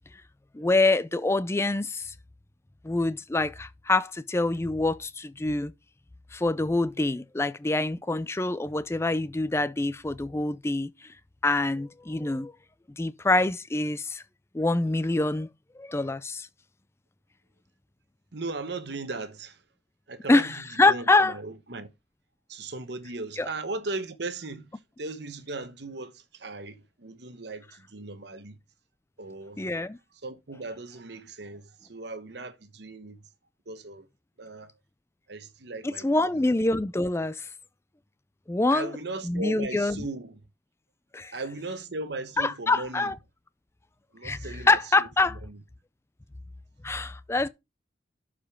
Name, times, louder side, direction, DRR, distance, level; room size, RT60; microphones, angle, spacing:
voice 1, 0.5-2.1 2.8-5.7 6.3-10.9 11.4-12.5 13.0-14.2 14.5-15.5 15.8-16.5 20.3-20.5 20.8-21.3 23.4-23.5 29.6-30.0 36.0-37.5 38.5-38.9 39.2-40.0 41.1-41.3 42.4-43.1 44.2-44.4 44.7-45.4 46.8-47.5, left 2 dB, 15° left, 0.4 m, -25 dB
voice 2, 18.3-19.6 20.1-21.9 22.5-28.6 29.2-29.7 30.2-33.3 33.7-34.1 34.4-34.7 35.3-36.5 38.7-40.4 41.3-43.1 44.1-45.6, right 3 dB, 60° right, 1.0 m, -38 dB
11.5 x 5.0 x 3.6 m
head